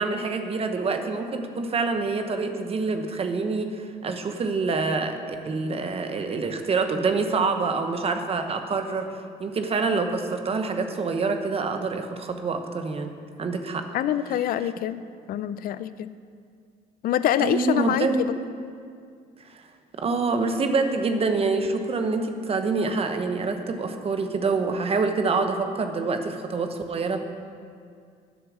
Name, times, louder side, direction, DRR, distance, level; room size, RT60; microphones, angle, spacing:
voice 1, 0.0-13.1 13.4-13.9 14.6-14.7 17.4-18.3 19.5-19.6 19.9-27.2, right 4 dB, 35° right, 6 dB, 0.9 m, -26 dB
voice 2, 13.9-15.0 15.3-16.1 17.0-18.3, left 11 dB, 60° left, 14 dB, 0.5 m, -25 dB
10.5 x 7.3 x 6.2 m, 2.2 s
cardioid pair, 110°, 17 cm